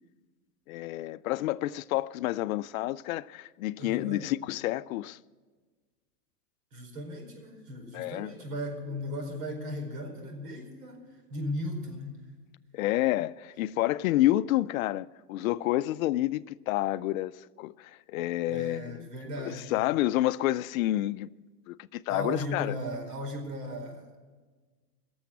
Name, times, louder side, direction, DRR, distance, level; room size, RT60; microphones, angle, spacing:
voice 1, 0.7-5.2 7.9-8.3 12.7-19.1 19.4-21.3 21.7-22.8, left 15 dB, 60° left, 0.5 m, -29 dB
voice 2, 3.8-4.3 6.7-12.2 18.5-19.9 22.1-24.2, equal, 75° right, 4.8 m, -37 dB
17.0 x 7.1 x 8.3 m
hypercardioid pair, 120°, 47 cm